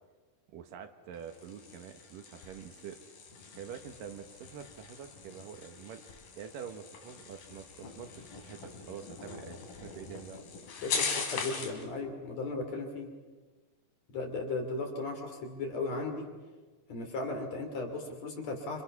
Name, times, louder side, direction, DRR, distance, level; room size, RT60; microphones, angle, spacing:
voice 1, 0.5-3.0 3.5-6.0 6.4-10.4, right 7 dB, 75° right, 7 dB, 3.0 m, -46 dB
sound 1, 1.1-11.8, left 5 dB, 85° left, 4.4 m, -41 dB
voice 2, 10.8-13.1 14.1-16.3 16.9-18.8, left 3 dB, 50° left, 3 dB, 4.0 m, -36 dB
27.0 x 26.5 x 6.0 m, 1.4 s
omnidirectional pair, 4.0 m